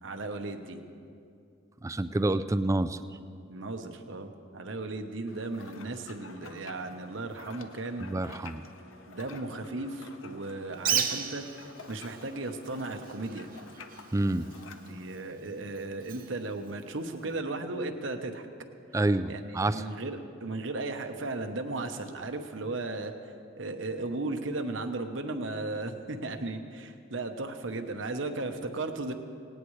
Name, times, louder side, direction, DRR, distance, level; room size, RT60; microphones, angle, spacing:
voice 1, 0.0-0.8 3.5-8.1 9.1-11.4 11.9-13.5 14.9-18.5 19.3-23.1 23.6-29.1, right 2 dB, 65° right, 6 dB, 1.0 m, -36 dB
voice 2, 1.8-3.0 8.0-8.6 14.1-14.5 18.9-19.8, right 2 dB, 15° right, 12 dB, 0.3 m, -28 dB
sound 1, 5.3-15.1, left 4 dB, 80° left, 0.8 m, -50 dB
Bird, 10.7-17.4, right 8 dB, 45° right, 0.8 m, -37 dB
18.5 x 17.5 x 3.2 m, 2.5 s
head